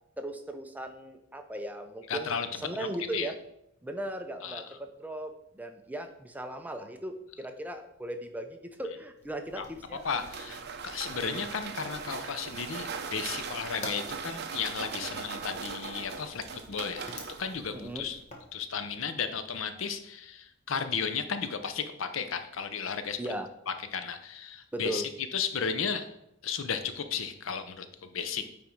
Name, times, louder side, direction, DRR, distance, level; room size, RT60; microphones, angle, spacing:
voice 1, 0.2-2.4 2.6-3.4 3.8-10.0 11.1-11.3 17.7-18.0 23.2-23.5 24.7-25.1, right 1 dB, 10° right, 6 dB, 0.5 m, -37 dB
voice 2, 2.1-2.5 2.8-2.9 3.1-3.3 4.4-4.6 9.6-9.7 10.0-17.1 17.4-18.2 18.5-23.2 23.9-26.1 26.4-28.4, left 6 dB, 70° left, 9 dB, 0.6 m, -34 dB
Fire, 9.2-18.5, left 1 dB, 35° left, 1.3 m, -50 dB
sound 1, 9.5-18.2, right 5 dB, 50° right, 0.6 m, -40 dB
9.3 x 3.7 x 4.5 m, 0.79 s
head